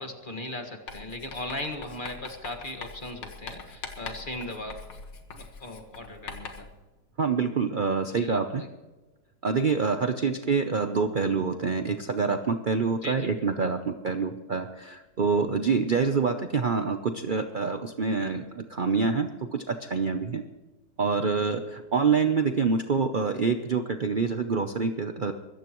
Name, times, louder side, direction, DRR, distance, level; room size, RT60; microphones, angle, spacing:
voice 1, 0.0-4.7 5.3-6.6 8.2-8.4 13.0-13.3, left 1 dB, 30° left, 4 dB, 1.8 m, -38 dB
Writing, 0.9-6.8, left 5 dB, 80° left, 2.2 m, -43 dB
voice 2, 7.2-8.6 9.4-20.4 21.0-25.3, right 5 dB, 65° right, 7 dB, 0.5 m, -26 dB
24.0 x 14.5 x 3.1 m, 1.1 s
omnidirectional pair, 1.9 m